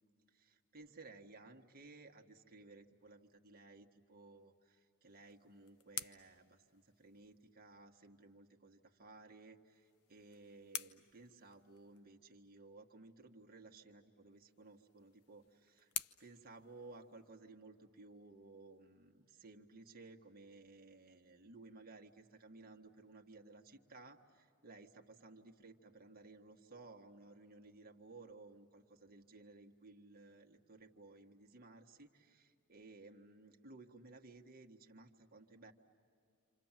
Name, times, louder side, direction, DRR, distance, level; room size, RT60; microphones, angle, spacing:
voice 1, 0.3-15.9 16.2-35.7, right 3 dB, 45° right, 2 dB, 1.7 m, -58 dB
sound 1, 5.0-7.5 9.6-12.1 14.3-17.5, left 9 dB, 85° left, 0.7 m, -50 dB
28.0 x 27.5 x 7.5 m, 2.4 s
head